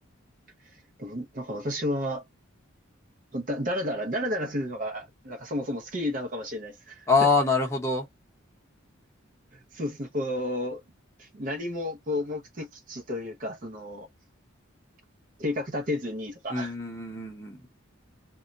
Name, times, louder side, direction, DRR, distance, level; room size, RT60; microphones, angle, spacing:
voice 1, 1.0-2.2 3.3-7.3 9.7-10.8 11.2-14.1 15.4-16.7, left 1 dB, 40° right, 0.5 m, -32 dB
voice 2, 7.1-8.1 16.5-17.7, left 4 dB, 15° left, 0.8 m, -25 dB
2.2 x 2.1 x 3.7 m
head